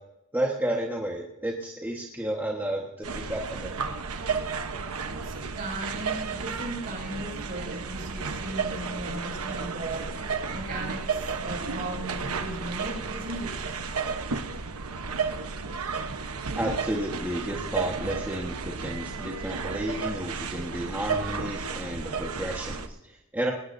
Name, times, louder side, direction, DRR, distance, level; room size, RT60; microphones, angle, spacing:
voice 1, 0.3-3.8 16.5-23.5, right 1 dB, 10° right, -1 dB, 1.4 m, -32 dB
sound 1, 3.0-22.9, right 5 dB, 75° right, 1.1 m, -33 dB
voice 2, 5.2-13.7, right 1 dB, 40° right, 0 dB, 6.3 m, -37 dB
19.5 x 18.5 x 2.7 m, 0.95 s
head